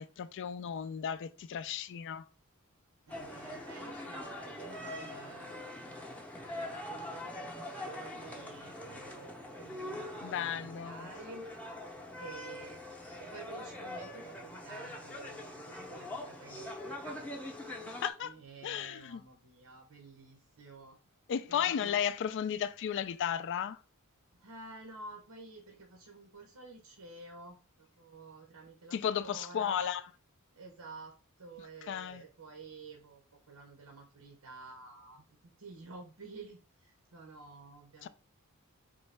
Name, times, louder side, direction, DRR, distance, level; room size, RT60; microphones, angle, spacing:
voice 1, 0.0-2.2 10.2-11.1 17.9-18.3 18.6-19.2 21.3-23.8 28.9-30.0 31.9-32.2 38.0-38.1, left 8 dB, 55° left, 0.3 m, -34 dB
sound 1, 3.1-18.1, left 1 dB, 5° left, 0.6 m, -43 dB
voice 2, 3.1-6.0 6.5-11.4 12.2-12.8 13.2-17.2 18.2-21.0 21.5-22.0 24.4-27.6 28.0-29.9 30.6-33.2 33.5-38.1, right 3 dB, 90° right, 0.8 m, -50 dB
3.8 x 3.2 x 3.3 m
head